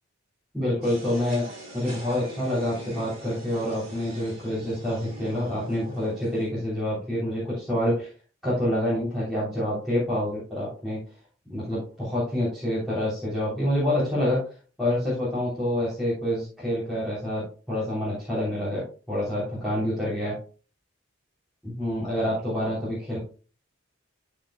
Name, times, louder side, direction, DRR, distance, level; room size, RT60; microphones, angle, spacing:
voice 1, 0.5-1.5 1.7-8.1 8.4-11.0 11.5-14.4 14.8-20.4 21.6-23.2, left 1 dB, ahead, -10 dB, 3.2 m, -27 dB
sound 1, 0.8-6.5, right 1 dB, 30° right, 3.3 m, -43 dB
13.5 x 5.2 x 2.3 m, 0.37 s
head